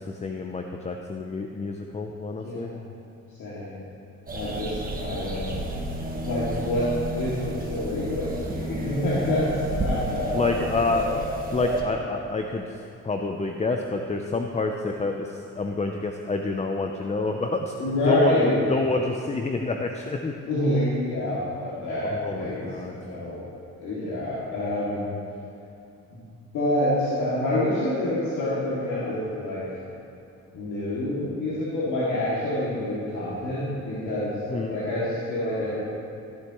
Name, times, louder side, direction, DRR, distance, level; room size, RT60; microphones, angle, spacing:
voice 1, 0.1-2.7 10.3-11.1 11.5-12.6 13.0-17.7 18.1-20.3 22.1-22.9 34.5-34.8, left 3 dB, 20° left, 4 dB, 0.6 m, -28 dB
voice 2, 2.4-2.8 3.4-3.8 4.3-5.6 6.2-6.9 7.2-9.5 9.8-11.1 17.8-18.5 20.5-23.4 23.8-25.1 26.5-29.6 30.5-35.8, left 1 dB, 75° left, -10 dB, 2.4 m, -27 dB
sound 1, 4.3-11.8, right 1 dB, 30° right, 1.4 m, -31 dB
15.0 x 8.1 x 3.0 m, 2.7 s
cardioid pair, 90°, 30 cm